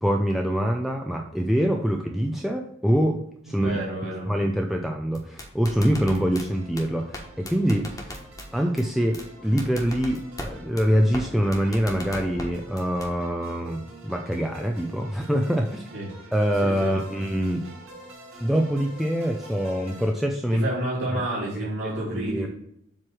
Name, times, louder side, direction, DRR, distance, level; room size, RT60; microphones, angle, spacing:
voice 1, 0.0-3.2 3.4-3.8 4.3-8.2 8.5-15.8 16.3-17.6 18.4-20.7 22.1-22.5, equal, ahead, 1 dB, 0.4 m, -24 dB
voice 2, 3.5-4.3 15.9-16.1 16.6-16.9 20.5-22.5, right 1 dB, 85° right, -10 dB, 2.6 m, -30 dB
sound 1, 5.1-6.4 6.8-6.9 7.1-7.2 7.5-8.5 8.8-8.9 9.1-9.2 9.6-10.5 10.8-10.9 11.1-11.2 11.5-12.5 12.8-13.1, left 1 dB, 15° left, 1.2 m, -36 dB
sound 2, 5.9-20.1, right 2 dB, 65° right, 2.9 m, -47 dB
7.5 x 3.1 x 6.1 m, 0.73 s
head